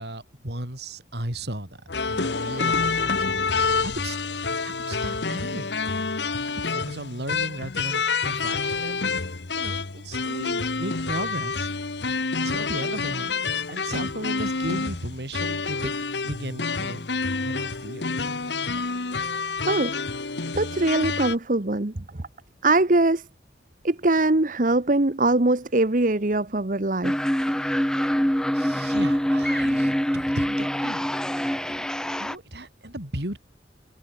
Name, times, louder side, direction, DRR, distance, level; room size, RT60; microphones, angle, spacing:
voice 1, 0.0-1.8 2.1-4.2 4.6-5.7 6.5-11.7 12.4-13.4 13.7-17.1 17.4-18.2 27.6-27.8 28.5-31.0 31.3-31.9 32.2-33.4, right 1 dB, 70° right, 6.4 m, -36 dB
sound 1, 1.9-21.3, left 4 dB, 80° left, 1.6 m, -28 dB
voice 2, 20.6-22.0 22.6-23.2 23.8-27.1, right 2 dB, 45° right, 1.2 m, -22 dB
sound 2, 27.0-32.4, equal, 5° left, 0.8 m, -24 dB
head